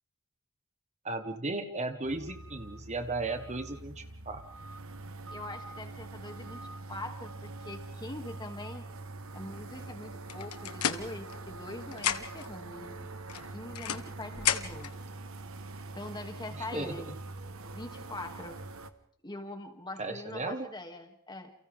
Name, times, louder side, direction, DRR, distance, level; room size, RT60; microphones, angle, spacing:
voice 1, 1.0-4.4 16.6-17.0 20.0-20.7, right 2 dB, 30° right, 7 dB, 1.4 m, -35 dB
sound 1, 2.0-18.9, right 2 dB, 65° right, 1.5 m, -44 dB
voice 2, 5.3-8.9 9.3-13.1 13.5-14.9 15.9-17.2 17.7-18.6 19.2-21.5, left 2 dB, 20° left, 4 dB, 2.6 m, -43 dB
sound 2, 10.3-11.7 11.9-12.5 13.3-15.0, left 9 dB, 80° left, 1.4 m, -33 dB
29.5 x 29.0 x 3.7 m, 0.62 s
head